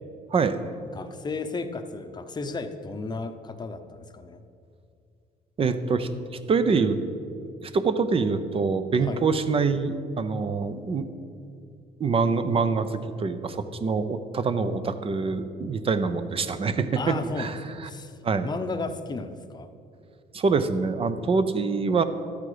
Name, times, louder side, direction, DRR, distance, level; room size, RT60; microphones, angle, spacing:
voice 1, 0.9-4.4 9.0-9.2 17.0-18.2 18.4-19.7, left 3 dB, 25° left, 8 dB, 0.8 m, -34 dB
voice 2, 5.6-7.0 7.6-11.1 12.0-17.6 18.2-18.5 20.3-22.0, right 4 dB, 35° right, 11 dB, 0.7 m, -25 dB
12.5 x 8.4 x 5.0 m, 2.5 s
cardioid pair, 110°, 17 cm